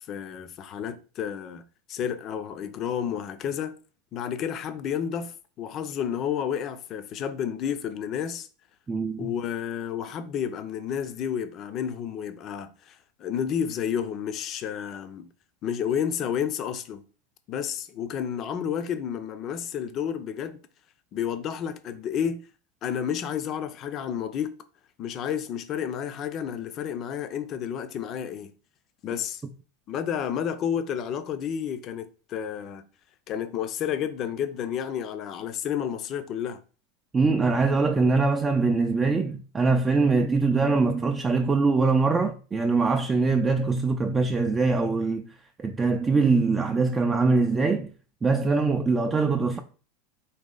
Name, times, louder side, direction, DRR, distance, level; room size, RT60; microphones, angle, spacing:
voice 1, 0.1-1.6 1.9-3.7 4.1-8.5 9.2-15.3 15.6-17.0 17.5-20.6 21.1-22.4 22.8-24.5 25.0-28.5 29.0-29.4 29.9-32.8 33.3-36.6, left 8 dB, 40° left, 0.6 m, -31 dB
voice 2, 8.9-9.3 37.1-45.2 45.6-47.9 48.2-49.6, right 4 dB, 20° right, 0.4 m, -23 dB
4.1 x 2.8 x 3.8 m
hypercardioid pair, 115°, 0 cm